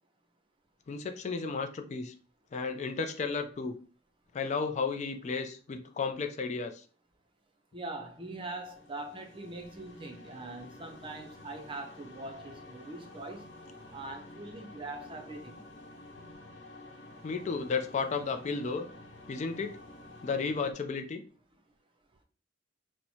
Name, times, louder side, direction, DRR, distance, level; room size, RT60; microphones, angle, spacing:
voice 1, 0.9-2.1 2.5-3.8 4.3-6.8 17.2-18.9 19.3-19.8 20.2-21.2, left 4 dB, 40° left, 0.3 m, -33 dB
voice 2, 7.7-13.5 13.9-15.6, right 2 dB, 30° right, 0.6 m, -42 dB
sound 1, 8.1-20.7, left 2 dB, 70° left, 0.9 m, -50 dB
4.4 x 2.1 x 2.7 m
head